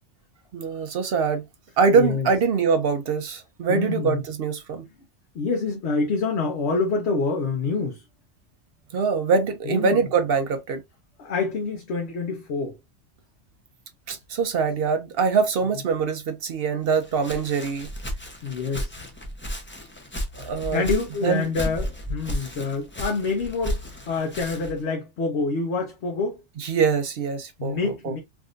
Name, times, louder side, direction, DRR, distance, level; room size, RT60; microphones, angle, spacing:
voice 1, 0.5-1.4 1.8-4.9 8.9-10.8 14.1-17.9 20.4-20.8 21.2-21.5 26.6-28.2, right 5 dB, 60° right, 0.7 m, -23 dB
voice 2, 1.9-2.3 3.7-4.2 5.3-8.0 9.6-10.0 11.2-12.8 18.4-19.0 20.7-26.4 27.6-28.2, left 4 dB, 65° left, 1.0 m, -27 dB
Walk footsteps, 16.9-24.8, equal, 15° left, 0.5 m, -33 dB
3.5 x 2.6 x 2.4 m
omnidirectional pair, 1.3 m